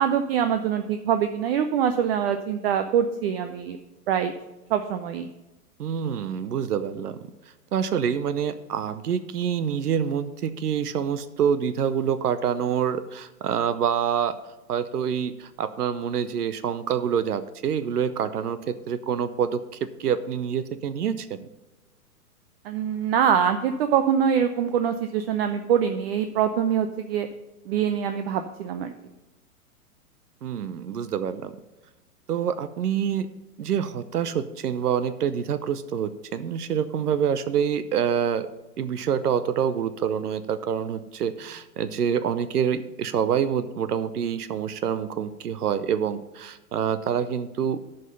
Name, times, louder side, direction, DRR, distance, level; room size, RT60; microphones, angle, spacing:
voice 1, 0.0-3.8 4.1-4.3 4.7-5.3 22.6-27.3 27.7-28.9, right 8 dB, 40° right, 8 dB, 0.6 m, -24 dB
voice 2, 5.8-7.2 7.7-14.4 14.7-19.6 20.0-21.5 30.4-31.5 32.3-33.3 33.6-38.5 38.8-47.8, right 8 dB, 75° right, 13 dB, 0.8 m, -26 dB
10.5 x 5.5 x 5.4 m, 1.0 s
hypercardioid pair, 115°, 46 cm